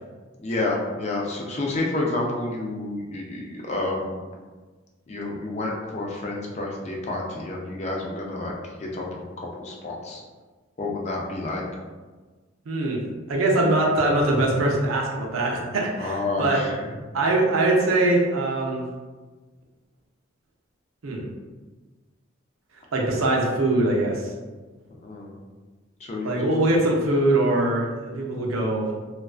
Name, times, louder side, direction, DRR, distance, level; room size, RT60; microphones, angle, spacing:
voice 1, 0.4-4.2 5.1-9.1 9.4-10.2 10.8-11.6 16.0-16.9 25.0-25.4 26.0-26.4, left 2 dB, 35° left, -1 dB, 0.4 m, -29 dB
voice 2, 12.7-13.0 13.3-16.6 17.1-18.8 21.0-21.3 22.9-24.2 26.2-28.9, right 2 dB, 80° right, -1 dB, 0.5 m, -22 dB
2.3 x 2.3 x 2.3 m, 1.3 s
head